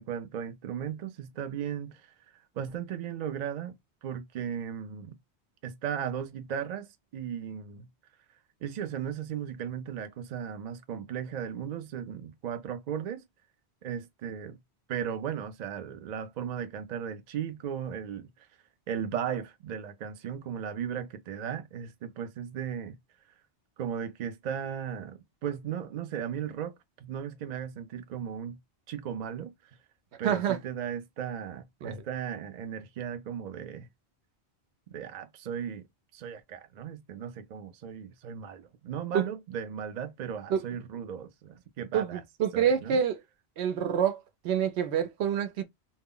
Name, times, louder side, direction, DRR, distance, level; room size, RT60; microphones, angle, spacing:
voice 1, 0.0-2.1 2.6-3.7 4.0-5.2 5.6-6.9 7.1-7.9 8.6-13.3 13.8-14.6 14.9-18.3 18.9-23.0 23.8-28.6 28.9-29.5 30.2-33.9 34.9-35.8 36.1-42.2 42.5-43.0, right 8 dB, 55° right, 0.5 m, -36 dB
voice 2, 30.2-30.6 31.8-32.0 39.1-39.2 40.5-40.6 41.9-43.2 43.6-44.2 44.4-45.6, right 8 dB, 80° right, 0.9 m, -27 dB
2.2 x 2.0 x 3.6 m
omnidirectional pair, 1.1 m